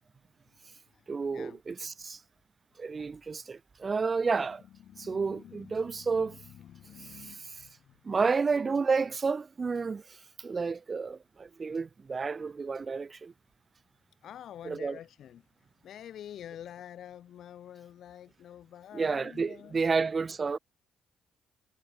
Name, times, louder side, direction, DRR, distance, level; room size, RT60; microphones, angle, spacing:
voice 1, 1.1-2.2 2.8-4.6 5.0-6.4 7.1-7.4 8.0-10.0 10.4-13.3 14.6-15.0 18.9-20.6, right 4 dB, 40° right, 0.5 m, -30 dB
voice 2, 4.9-7.9 14.2-15.4 15.8-19.9, left 10 dB, 65° left, 1.2 m, -48 dB
hypercardioid pair, 50°, 0 cm